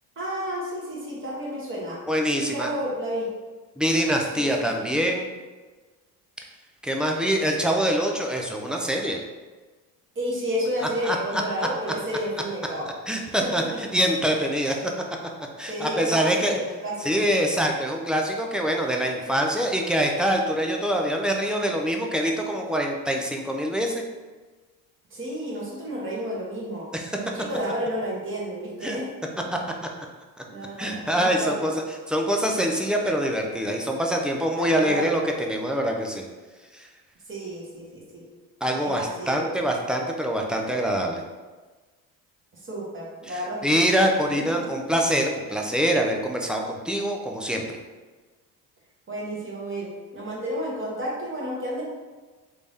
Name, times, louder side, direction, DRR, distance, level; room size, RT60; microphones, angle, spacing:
voice 1, 0.2-2.0 2.3-3.3 4.3-4.8 10.1-12.9 13.4-13.8 15.7-17.2 25.1-26.9 27.2-29.3 30.5-31.7 34.6-35.0 37.3-38.3 38.8-39.6 42.6-43.9 44.4-44.7 49.1-51.8, equal, 30° right, -5 dB, 1.2 m, -31 dB
voice 2, 2.1-2.7 3.8-5.3 6.8-9.2 11.0-11.4 13.1-14.8 15.6-16.6 17.0-24.0 26.9-27.1 28.8-29.0 30.8-36.3 36.7-36.9 38.6-41.2 43.3-47.6, equal, ahead, 1 dB, 0.3 m, -24 dB
3.4 x 2.6 x 3.4 m, 1.3 s
supercardioid pair, 90°, 39 cm